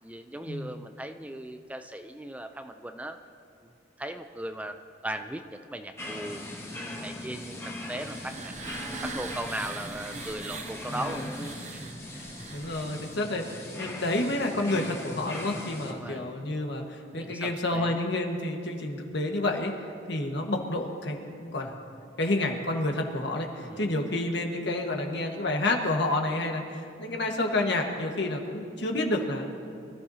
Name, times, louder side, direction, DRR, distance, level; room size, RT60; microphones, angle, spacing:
voice 1, 0.0-3.2 3.6-3.7 4.0-7.6 7.9-11.9 15.9-16.3 17.1-18.1 23.6-24.0, right 1 dB, 10° right, 7 dB, 0.5 m, -38 dB
sound 1, 6.0-15.9, left 1 dB, 15° left, 1.5 m, -40 dB
sound 2, 7.5-13.3, right 4 dB, 40° right, 0.8 m, -42 dB
voice 2, 10.9-11.2 12.5-19.7 20.1-21.7 22.2-29.4, left 2 dB, 65° left, 2 dB, 1.6 m, -29 dB
24.5 x 14.0 x 2.8 m, 2.4 s
head